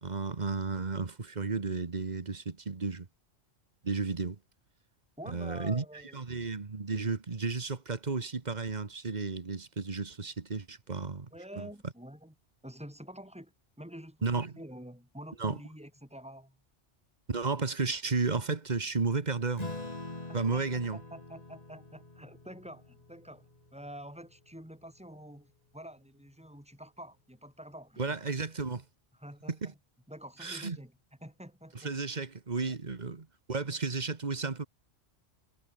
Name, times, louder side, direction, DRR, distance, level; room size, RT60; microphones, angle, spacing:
voice 1, 0.0-3.1 3.8-4.4 5.3-5.8 6.1-11.3 11.6-11.7 14.2-14.6 15.4-15.6 17.3-19.6 20.3-21.0 28.0-28.8 29.6-29.7 30.4-30.8 31.7-34.7, right 4 dB, 40° right, 1.6 m, -33 dB
voice 2, 5.2-6.2 11.3-12.3 12.6-16.6 20.3-28.3 29.2-29.7 30.1-30.9 31.2-31.9 32.6-32.7, equal, 5° right, 6.1 m, -48 dB
Acoustic guitar / Strum, 19.6-24.4, left 2 dB, 35° left, 2.8 m, -44 dB
omnidirectional pair, 1.2 m